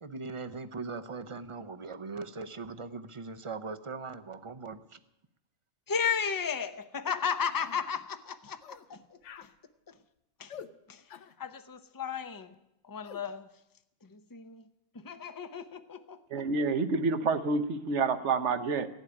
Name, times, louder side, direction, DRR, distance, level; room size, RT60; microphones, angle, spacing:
voice 1, 0.0-5.0, right 4 dB, 35° right, 11 dB, 0.6 m, -40 dB
voice 2, 5.9-9.5 9.9-10.0 10.4-10.6 10.9-11.0 11.4-12.5 12.8-13.5 14.0-14.6 14.9-16.5, left 6 dB, 20° left, 11 dB, 0.6 m, -34 dB
sound 1, 7.1-7.2 7.6-7.8 8.6-8.9 9.2-9.5 10.5-10.7 11.1-11.3 13.0-13.2, left 8 dB, 90° left, 1.1 m, -47 dB
voice 3, 16.3-18.9, right 4 dB, 80° right, 10 dB, 1.3 m, -28 dB
15.0 x 8.1 x 10.0 m, 0.86 s
omnidirectional pair, 1.2 m